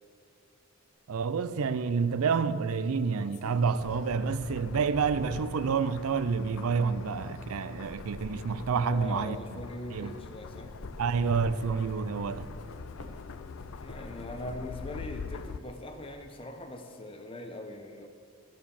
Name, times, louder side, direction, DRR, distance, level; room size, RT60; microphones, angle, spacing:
voice 1, 1.1-9.4 9.9-10.1 11.0-12.5, right 5 dB, 80° right, 0.4 m, -28 dB
sound 1, 3.1-5.7 6.4-6.5 7.6-10.2 10.5-14.9 15.2-16.1, left 1 dB, 85° left, 1.1 m, -48 dB
sound 2, 3.8-15.6, left 6 dB, 65° left, 0.3 m, -44 dB
voice 2, 8.8-10.8 13.8-18.1, left 1 dB, 25° left, 0.9 m, -41 dB
12.0 x 7.3 x 7.0 m
head